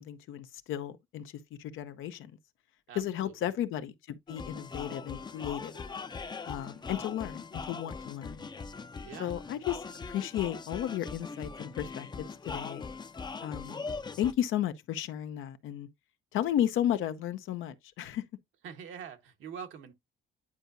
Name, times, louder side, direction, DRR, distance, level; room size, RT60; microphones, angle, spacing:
voice 1, 0.0-2.3 2.9-5.8 6.5-8.5 9.2-9.8 10.1-12.9 13.4-13.8 14.2-15.9 16.3-18.2, left 11 dB, 85° left, 0.8 m, -34 dB
voice 2, 2.9-3.3 9.0-9.3 18.6-19.9, right 7 dB, 80° right, 1.3 m, -44 dB
sound 1, 4.3-14.3, left 4 dB, 20° left, 0.5 m, -41 dB
9.8 x 4.6 x 2.6 m
cardioid pair, 90°, 20 cm